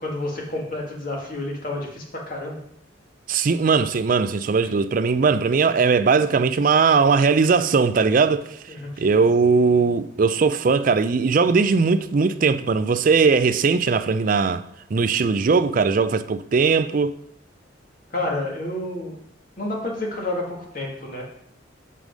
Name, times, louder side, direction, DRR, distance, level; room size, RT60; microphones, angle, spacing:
voice 1, 0.0-2.6 4.6-4.7 8.7-9.1 18.1-19.2 19.6-21.2, left 2 dB, 45° left, 1.8 m, -29 dB
voice 2, 3.3-8.6 9.0-14.6 14.9-17.2, right 5 dB, 45° right, 0.4 m, -19 dB
7.7 x 4.9 x 5.2 m
head